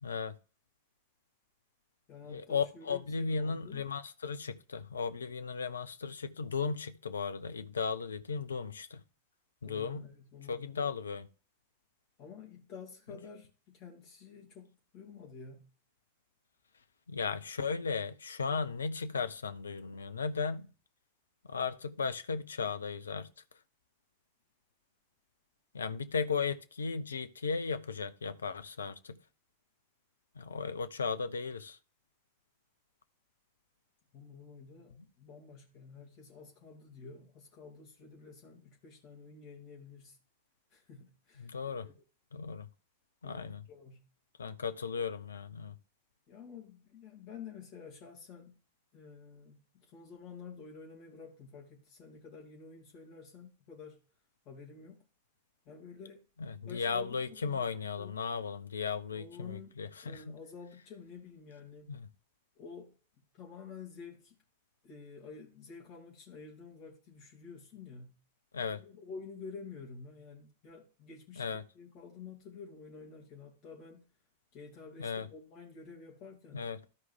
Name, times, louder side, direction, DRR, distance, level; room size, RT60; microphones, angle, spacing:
voice 1, 0.0-0.4 2.3-9.0 9.6-10.1 10.5-11.3 17.1-20.7 21.5-23.3 25.7-29.2 30.3-31.8 35.0-35.1 41.4-41.9 42.3-42.7 43.2-43.6 44.4-45.8 56.4-60.4 61.9-62.1 68.5-68.8 71.4-71.6 75.0-75.3 76.5-76.8, left 5 dB, 70° left, 0.7 m, -36 dB
voice 2, 2.1-3.8 9.6-10.7 12.2-15.7 34.1-40.2 40.7-41.9 43.2-44.0 46.3-48.6 48.9-54.0 54.4-55.0 55.6-56.2 56.6-58.1 59.1-59.7 60.0-61.9 62.6-62.9 63.3-64.4 64.8-68.1 68.6-71.5 71.7-74.0 74.5-76.7, left 5 dB, 40° left, 2.9 m, -50 dB
13.0 x 4.7 x 3.6 m
figure-of-eight pair, 90°, 0 cm